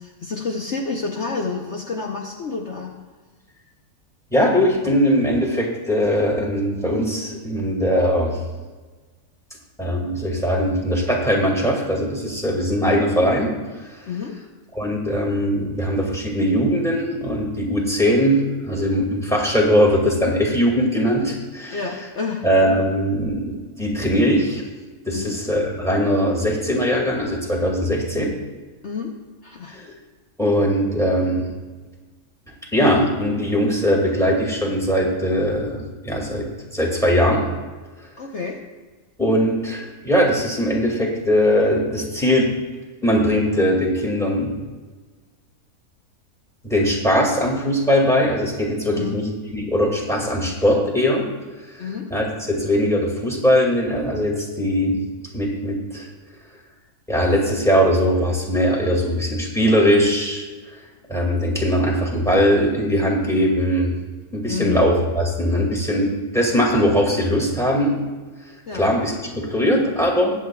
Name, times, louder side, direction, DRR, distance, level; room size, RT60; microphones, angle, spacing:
voice 1, 0.0-2.9 14.1-14.4 21.7-22.5 25.1-25.4 28.8-29.1 29.4-29.7 38.2-38.6 48.9-49.3 51.8-52.1 64.5-64.9 68.7-68.9, left 5 dB, 55° left, 0 dB, 1.1 m, -29 dB
voice 2, 4.3-8.4 9.8-13.5 13.8-14.0 14.7-21.8 22.4-24.6 25.1-28.3 29.7-30.0 30.4-31.5 32.7-36.5 36.7-37.4 39.2-42.5 43.0-44.6 46.6-51.2 51.7-55.0 55.3-56.1 57.1-60.4 60.7-60.8 61.1-64.0 64.3-68.1 68.7-70.3, equal, ahead, -1 dB, 2.0 m, -20 dB
22.0 x 8.3 x 2.3 m, 1.3 s
omnidirectional pair, 1.6 m